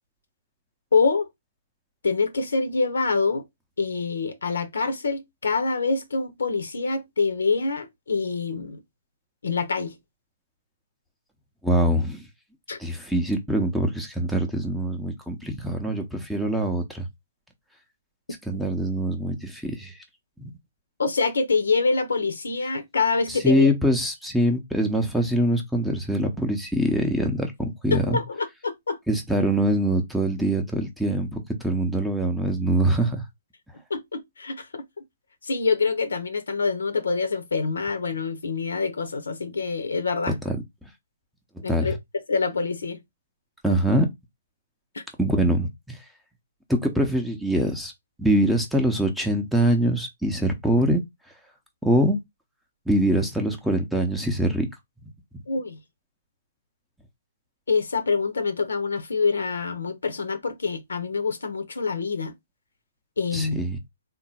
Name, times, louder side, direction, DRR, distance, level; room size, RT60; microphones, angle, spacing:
voice 1, 0.9-1.3 2.0-3.4 3.8-8.8 9.4-9.9 12.7-12.8 21.0-23.7 27.9-29.0 33.9-34.8 35.4-40.4 41.6-41.9 42.3-43.0 43.7-43.8 44.9-45.0 55.5-55.8 57.7-62.3 63.2-63.6, left 4 dB, 65° left, 0.7 m, -25 dB
voice 2, 11.6-12.2 12.8-17.1 18.5-20.0 23.3-28.2 29.1-33.2 40.4-40.6 41.7-41.9 43.6-44.1 45.2-46.0 46.7-47.9 48.2-51.0 51.8-52.2 52.9-54.7 63.3-63.8, right 1 dB, ahead, 0.7 m, -23 dB
3.6 x 2.1 x 4.2 m
figure-of-eight pair, 125°, 0 cm